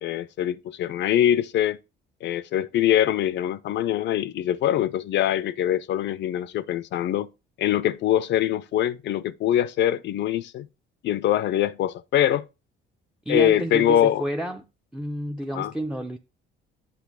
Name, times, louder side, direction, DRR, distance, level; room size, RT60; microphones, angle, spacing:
voice 1, 0.0-1.8 2.2-7.3 7.6-10.7 11.0-12.4 13.3-14.2 15.5-15.7, left 11 dB, 60° left, 0.5 m, -23 dB
voice 2, 13.3-14.6 14.9-16.2, right 1 dB, 5° right, 0.5 m, -29 dB
8.4 x 3.1 x 6.1 m
cardioid pair, 125°, 21 cm